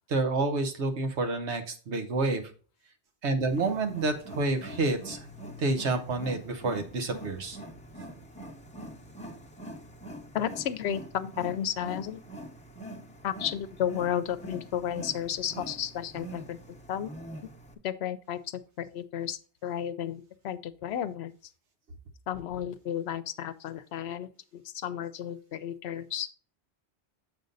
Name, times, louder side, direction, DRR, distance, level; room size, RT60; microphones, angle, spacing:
voice 1, 0.1-2.4 3.2-5.2 5.6-7.6, right 3 dB, 80° right, 7 dB, 1.3 m, -29 dB
Wild animals, 3.4-17.7, right 1 dB, 5° left, 0.8 m, -44 dB
voice 2, 10.3-12.2 13.2-17.1 17.8-21.3 22.3-26.3, left 10 dB, 75° left, 14 dB, 0.8 m, -33 dB
7.3 x 5.3 x 3.9 m, 0.39 s
omnidirectional pair, 1.1 m